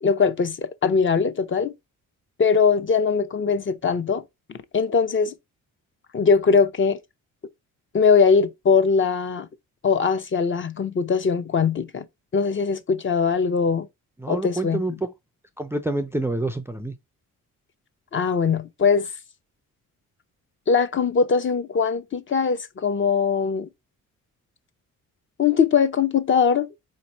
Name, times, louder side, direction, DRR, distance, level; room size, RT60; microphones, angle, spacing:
voice 1, 0.0-1.7 2.4-4.2 4.7-5.3 6.1-7.0 7.9-9.5 9.8-12.1 12.3-13.9 14.3-14.8 18.1-19.1 20.7-23.7 25.4-26.7, left 5 dB, 35° left, 0.6 m, -21 dB
voice 2, 14.2-15.1 15.6-17.0, right 2 dB, 10° right, 0.4 m, -27 dB
4.3 x 3.0 x 4.0 m
cardioid pair, 105°, 33 cm